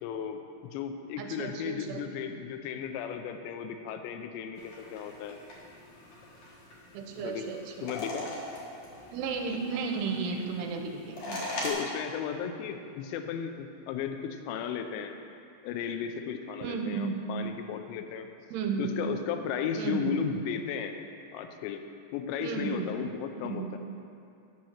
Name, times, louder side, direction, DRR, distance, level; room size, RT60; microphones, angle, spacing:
voice 1, 0.0-5.4 7.2-7.4 7.8-8.3 11.6-15.2 15.6-18.3 18.8-21.0 21.3-21.8 22.1-23.8, left 7 dB, 85° left, 6 dB, 2.8 m, -35 dB
voice 2, 1.2-2.0 6.9-7.9 9.1-11.4 16.6-17.3 18.5-18.9 19.8-20.2 22.4-22.9 23.4-23.7, right 5 dB, 80° right, 3 dB, 2.6 m, -33 dB
sound 1, 4.6-11.7, left 1 dB, 55° left, 2.1 m, -42 dB
10.5 x 4.3 x 6.3 m, 2.6 s
omnidirectional pair, 5.0 m